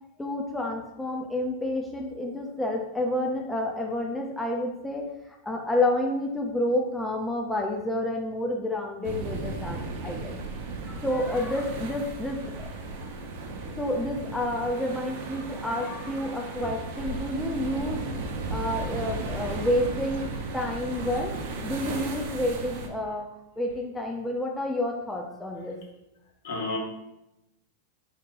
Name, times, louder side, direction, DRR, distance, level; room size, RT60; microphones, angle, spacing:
voice 1, 0.2-10.4 10.9-12.7 13.8-18.0 18.5-21.4 21.6-23.3 23.6-25.8, left 1 dB, 5° left, 0 dB, 0.4 m, -29 dB
sound 1, 9.0-22.9, right 3 dB, 55° right, 0.6 m, -35 dB
voice 2, 26.4-26.8, left 3 dB, 70° left, 0 dB, 1.2 m, -33 dB
3.9 x 2.8 x 3.7 m, 0.89 s
supercardioid pair, 145°, 0 cm